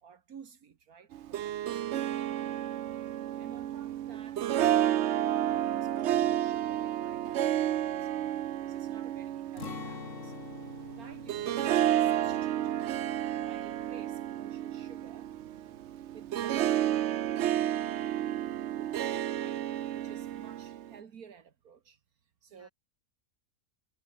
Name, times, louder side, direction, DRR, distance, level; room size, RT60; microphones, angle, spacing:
voice 1, 0.0-2.1 2.5-2.7 3.0-8.1 8.6-12.7 13.0-15.3 16.1-17.3 19.3-22.0 22.4-22.7, right 7 dB, 80° right, 1.9 m, -54 dB
Harp, 1.1-20.9, right 12 dB, 60° right, 0.8 m, -31 dB
Acoustic guitar, 9.6-15.5 15.8-16.0 16.4-16.9, left 6 dB, 60° left, 1.8 m, -47 dB
voice 2, 10.9-11.3 22.5-22.7, equal, 10° right, 6.8 m, -65 dB
omnidirectional pair, 1.5 m